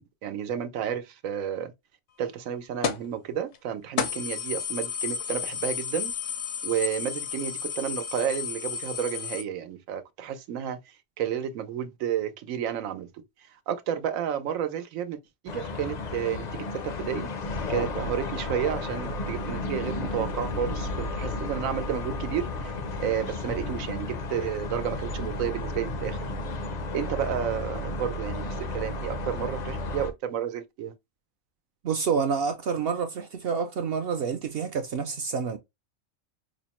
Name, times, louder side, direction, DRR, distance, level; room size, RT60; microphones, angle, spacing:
voice 1, 0.0-1.7 2.2-6.1 6.6-13.1 13.7-15.2 15.4-17.3 17.7-22.7 23.0-26.2 26.9-30.9, right 9 dB, 85° right, 1.1 m, -31 dB
sound 1, 2.8-3.1 3.5-3.6 4.0-9.4, left 7 dB, 75° left, 1.0 m, -32 dB
sound 2, 15.5-30.1, left 2 dB, 50° left, 0.5 m, -33 dB
voice 2, 31.8-35.6, right 6 dB, 60° right, 0.6 m, -28 dB
4.9 x 2.0 x 2.9 m
omnidirectional pair, 1.4 m